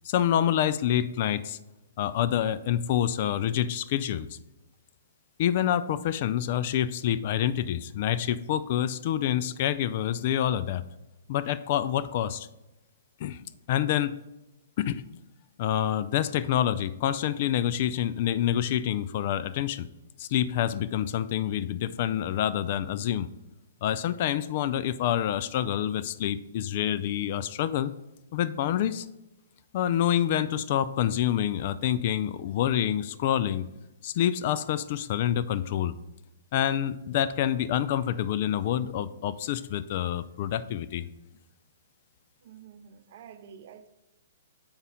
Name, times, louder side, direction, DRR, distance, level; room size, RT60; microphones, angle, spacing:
voice 1, 0.0-1.6 2.0-4.3 5.4-10.8 11.3-12.5 13.2-13.4 13.7-14.2 14.8-15.0 15.6-19.9 20.2-23.3 23.8-27.9 28.3-29.1 29.7-33.6 34.0-35.9 36.5-41.1, left 10 dB, 45° left, 14 dB, 0.4 m, -27 dB
voice 2, 42.4-43.9, right 8 dB, 50° right, 11 dB, 0.7 m, -49 dB
7.1 x 5.5 x 3.7 m, 0.98 s
hypercardioid pair, 125°, 0 cm